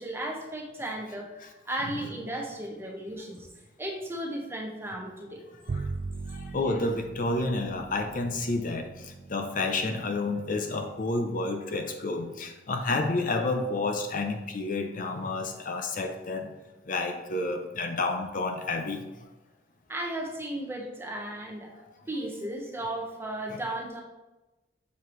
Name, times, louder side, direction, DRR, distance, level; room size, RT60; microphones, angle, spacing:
voice 1, 0.0-3.5 3.8-5.4 19.9-21.7 22.1-24.0, right 1 dB, 15° right, 0 dB, 0.9 m, -35 dB
Bowed string instrument, 5.7-12.1, right 4 dB, 45° right, 0.4 m, -41 dB
voice 2, 6.3-16.5 16.9-19.1, left 2 dB, 50° left, 5 dB, 0.6 m, -30 dB
7.1 x 4.6 x 3.1 m, 1.1 s
head